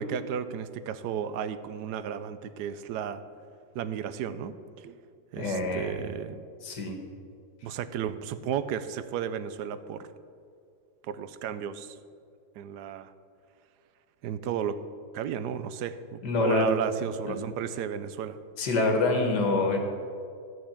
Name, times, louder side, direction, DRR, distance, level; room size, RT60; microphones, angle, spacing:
voice 1, 0.0-3.2 3.7-5.0 5.3-6.4 7.6-10.1 11.0-12.0 12.6-13.1 14.2-14.8 15.1-18.4, right 8 dB, 80° right, 12 dB, 1.2 m, -33 dB
voice 2, 5.4-6.0 6.6-7.0 16.2-16.7 17.3-17.4 18.6-19.8, left 2 dB, 85° left, 3 dB, 2.0 m, -26 dB
13.5 x 4.6 x 8.6 m, 2.3 s
omnidirectional pair, 1.7 m